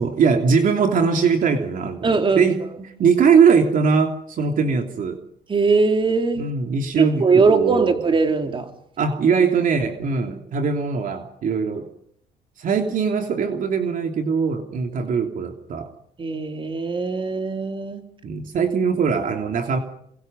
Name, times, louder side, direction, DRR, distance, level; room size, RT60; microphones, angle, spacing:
voice 1, 0.0-2.6 3.0-5.2 6.4-8.0 9.0-11.9 12.6-15.9 18.2-19.8, right 6 dB, 50° right, 4 dB, 3.0 m, -21 dB
voice 2, 2.0-2.4 5.5-6.5 7.0-8.7 16.2-18.0, right 4 dB, 30° right, 5 dB, 3.7 m, -20 dB
28.5 x 25.0 x 5.5 m, 0.72 s
cardioid pair, 110°, 17 cm